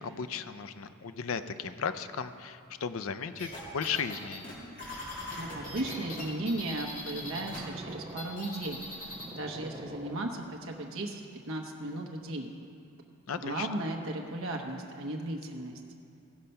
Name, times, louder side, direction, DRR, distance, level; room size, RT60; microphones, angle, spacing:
voice 1, 0.0-4.6 13.3-13.7, left 6 dB, 70° left, 11 dB, 0.5 m, -35 dB
sound 1, 3.4-7.6 7.9-9.3, left 1 dB, 40° left, 2.6 m, -41 dB
Purr, 5.0-10.7, right 1 dB, 25° right, 0.9 m, -46 dB
voice 2, 5.4-11.2 11.5-12.5 13.4-15.8, right 1 dB, 70° right, 2 dB, 1.0 m, -36 dB
16.5 x 5.6 x 5.4 m, 2.4 s
head